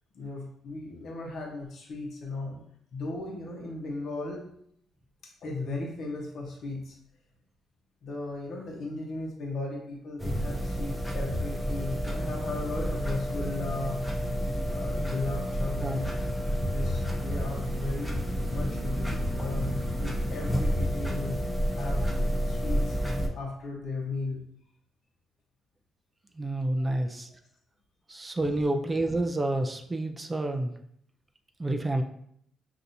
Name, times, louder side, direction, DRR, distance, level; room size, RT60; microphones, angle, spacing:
voice 1, 0.1-2.6 2.9-4.5 5.2-7.0 8.0-14.4 14.7-16.3 16.6-21.4 21.8-22.0 22.4-23.0 23.3-24.4 26.8-27.4, left 3 dB, 65° left, -1 dB, 0.9 m, -37 dB
sound 1, 10.2-23.3, equal, 5° left, 0.7 m, -30 dB
voice 2, 26.4-27.3 28.1-30.7 31.6-32.0, right 1 dB, 20° right, 4 dB, 0.4 m, -29 dB
5.5 x 2.6 x 2.6 m, 0.68 s
cardioid pair, 90°, 0 cm